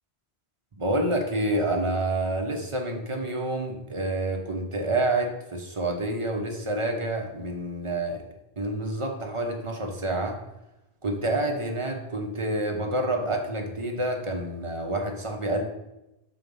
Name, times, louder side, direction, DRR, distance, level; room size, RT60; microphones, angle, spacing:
voice 1, 0.8-8.2 8.6-10.4 11.0-15.6, right 1 dB, 30° right, 2 dB, 1.0 m, -28 dB
6.2 x 4.4 x 5.4 m, 0.92 s
omnidirectional pair, 1.1 m